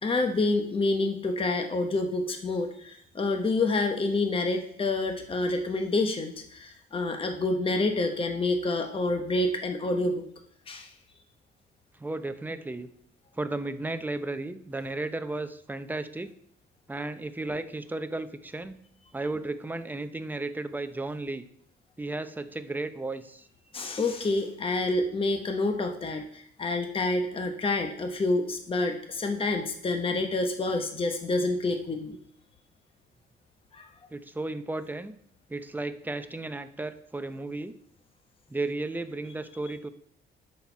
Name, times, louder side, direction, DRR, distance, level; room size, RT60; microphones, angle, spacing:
voice 1, 0.0-10.2 10.7-10.9 23.7-32.2 33.7-33.9, left 2 dB, 25° left, 4 dB, 0.9 m, -28 dB
voice 2, 12.0-12.9 13.3-16.3 16.9-18.8 19.1-21.4 22.0-23.5 34.1-35.1 35.5-37.8 38.5-39.9, right 2 dB, 10° right, 10 dB, 0.6 m, -34 dB
11.5 x 4.3 x 4.5 m, 0.67 s
cardioid pair, 90°, 20 cm